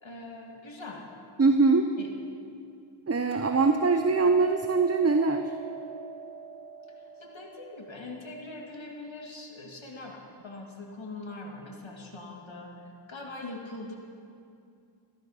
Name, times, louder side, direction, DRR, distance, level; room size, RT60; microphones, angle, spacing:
voice 1, 0.0-1.0 2.0-2.1 7.2-14.0, left 2 dB, 75° left, -1 dB, 2.2 m, -42 dB
voice 2, 1.4-1.9 3.1-5.4, right 4 dB, 35° right, 7 dB, 0.7 m, -22 dB
Hammer, 3.3-9.5, right 5 dB, 80° right, 2.4 m, -44 dB
17.0 x 13.0 x 5.7 m, 2.4 s
wide cardioid pair, 55°, 46 cm